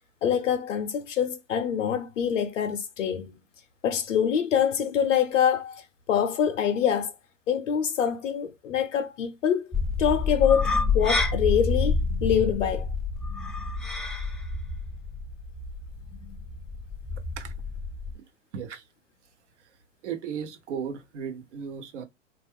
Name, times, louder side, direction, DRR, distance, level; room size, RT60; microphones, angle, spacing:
voice 1, 0.2-3.5 3.8-7.1 7.5-9.7 10.0-13.0, left 8 dB, 75° left, 0.7 m, -25 dB
s egg drop soup, 9.7-18.1, left 4 dB, ahead, 0.3 m, -28 dB
voice 2, 18.5-18.8 20.0-22.0, right 7 dB, 65° right, 0.9 m, -35 dB
3.4 x 2.5 x 3.3 m
hypercardioid pair, 100°, 38 cm